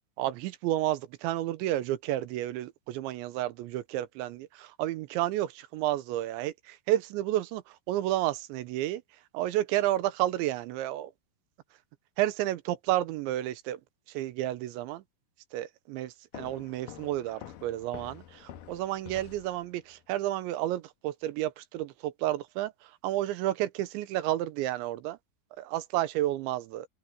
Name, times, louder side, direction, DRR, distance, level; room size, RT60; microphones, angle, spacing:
voice 1, 0.2-9.0 9.3-11.1 12.2-13.8 14.1-15.0 15.5-25.2 25.6-26.9, right 14 dB, 80° right, 3.1 m, -31 dB
sound 1, 16.3-20.0, left 11 dB, 75° left, 2.1 m, -47 dB
open air
omnidirectional pair, 5.4 m